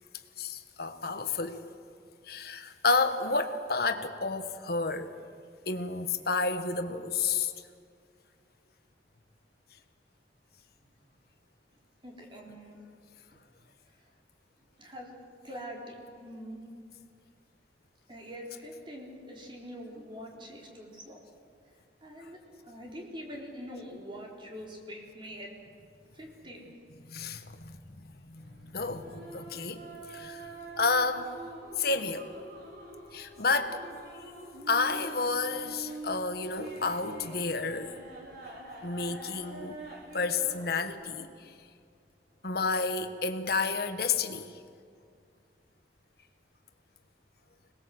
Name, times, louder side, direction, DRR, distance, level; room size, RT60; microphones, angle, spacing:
voice 1, 0.4-1.6 2.3-5.1 5.7-7.5 27.0-29.8 30.1-30.5 30.8-31.3 31.8-32.3 33.1-33.8 34.7-37.9 38.8-39.8 40.1-41.3 42.4-44.6, left 4 dB, 60° left, 1.5 m, -30 dB
voice 2, 12.0-12.8 14.8-15.1 15.4-16.7 18.1-21.2 22.0-25.5 26.1-26.7, equal, 30° right, 4.1 m, -44 dB
sound 1, 28.4-40.9, right 2 dB, 60° right, 5.3 m, -45 dB
25.5 x 20.0 x 7.9 m
head